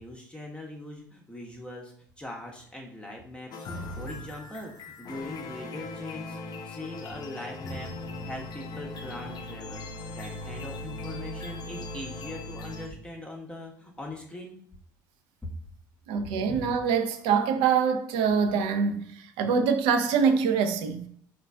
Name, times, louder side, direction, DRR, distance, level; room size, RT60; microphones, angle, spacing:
voice 1, 0.0-9.8 10.1-14.6, left 1 dB, 10° left, 0.7 m, -41 dB
sound 1, 3.5-12.9, left 2 dB, 40° left, 0.5 m, -39 dB
voice 2, 16.1-21.1, right 6 dB, 55° right, 0.5 m, -24 dB
3.9 x 2.5 x 2.3 m
figure-of-eight pair, 60°, 11 cm